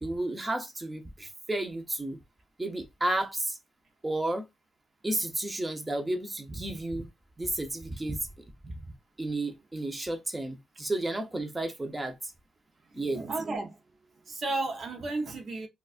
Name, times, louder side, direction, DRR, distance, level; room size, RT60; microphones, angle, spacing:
voice 1, 0.0-2.2 2.6-3.6 4.0-4.4 5.0-7.1 7.4-8.2 8.6-8.7 9.2-12.1 12.9-13.2, right 1 dB, 15° right, 0.8 m, -32 dB
voice 2, 13.0-13.8 14.3-15.7, right 2 dB, 45° right, 0.8 m, -33 dB
4.0 x 2.3 x 2.4 m
cardioid pair, 90°, 0 cm